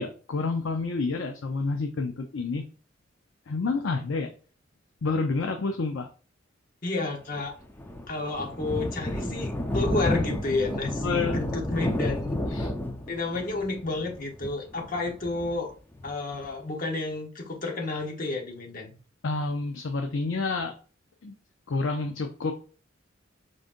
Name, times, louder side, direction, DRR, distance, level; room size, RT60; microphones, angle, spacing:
voice 1, 0.0-2.6 3.5-4.3 5.0-6.1 11.0-11.4 12.5-12.7 19.2-20.8 21.2-21.4 21.7-22.5, left 3 dB, 80° left, 4 dB, 0.5 m, -29 dB
voice 2, 6.8-7.5 8.1-12.4 13.1-15.7 16.0-18.9, left 3 dB, 45° left, 2 dB, 1.0 m, -31 dB
Thunder, 7.3-16.5, left 1 dB, 10° left, 0.5 m, -31 dB
5.1 x 3.9 x 2.5 m, 0.38 s
head